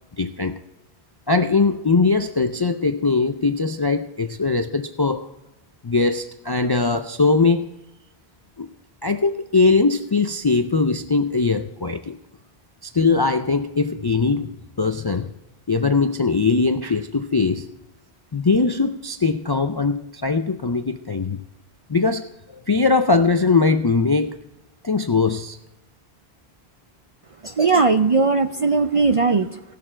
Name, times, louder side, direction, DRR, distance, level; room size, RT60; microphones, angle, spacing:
voice 1, 0.2-0.5 1.3-5.3 5.8-7.7 8.6-8.7 9.0-12.2 12.8-15.3 15.7-17.7 18.3-21.4 21.9-22.3 22.7-24.4 24.8-25.6, left 4 dB, 40° left, 8 dB, 0.3 m, -20 dB
voice 2, 27.4-29.6, right 4 dB, 45° right, 7 dB, 0.5 m, -18 dB
17.5 x 6.7 x 4.4 m, 0.93 s
omnidirectional pair, 1.1 m